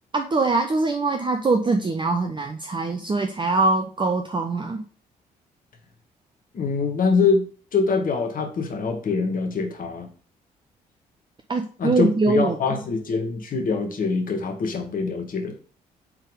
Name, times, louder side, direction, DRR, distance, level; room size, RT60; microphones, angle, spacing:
voice 1, 0.1-4.8 11.5-12.5, right 3 dB, 25° right, 4 dB, 0.7 m, -23 dB
voice 2, 6.5-10.1 11.8-15.6, left 4 dB, 40° left, 4 dB, 1.5 m, -24 dB
8.1 x 3.7 x 3.6 m, 0.39 s
figure-of-eight pair, 40°, 21 cm